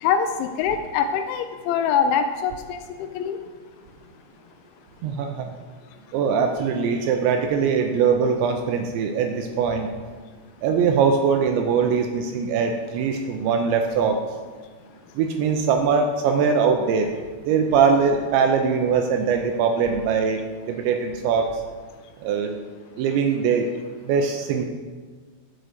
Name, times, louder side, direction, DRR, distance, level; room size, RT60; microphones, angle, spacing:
voice 1, 0.0-3.4, left 7 dB, 85° left, 8 dB, 2.8 m, -24 dB
voice 2, 5.0-5.5 6.1-9.9 10.6-14.2 15.2-17.1 17.5-20.4 20.7-21.5 22.2-22.6 23.0-23.7 24.1-24.7, right 6 dB, 85° right, 5 dB, 2.7 m, -21 dB
10.0 x 6.3 x 6.5 m, 1.5 s
omnidirectional pair, 5.6 m